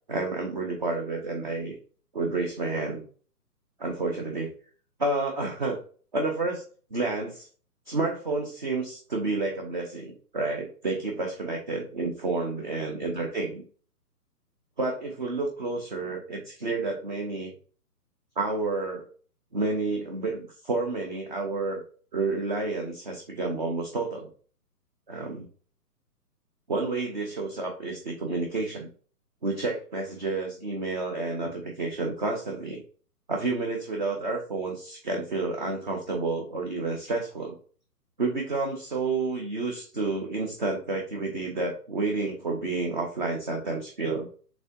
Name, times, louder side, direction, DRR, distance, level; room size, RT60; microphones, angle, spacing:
voice 1, 0.1-1.7 2.1-3.0 3.8-4.5 5.0-5.8 6.1-6.6 6.9-7.5 7.9-13.6 14.8-17.5 18.4-19.1 19.5-21.8 22.1-24.3 25.1-25.5 26.7-28.9 29.4-32.8 33.3-37.6 38.2-44.3, right 3 dB, 30° right, 1 dB, 0.5 m, -30 dB
4.1 x 3.4 x 2.6 m, 0.41 s
figure-of-eight pair, 140°, 48 cm